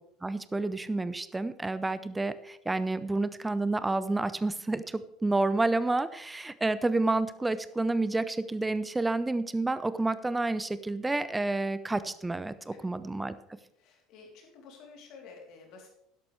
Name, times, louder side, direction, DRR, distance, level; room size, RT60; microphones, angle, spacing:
voice 1, 0.2-13.3, right 2 dB, 15° right, 15 dB, 0.7 m, -29 dB
voice 2, 13.8-15.9, left 4 dB, 55° left, 0 dB, 3.5 m, -51 dB
13.0 x 11.5 x 3.4 m, 0.75 s
figure-of-eight pair, 65°, 0 cm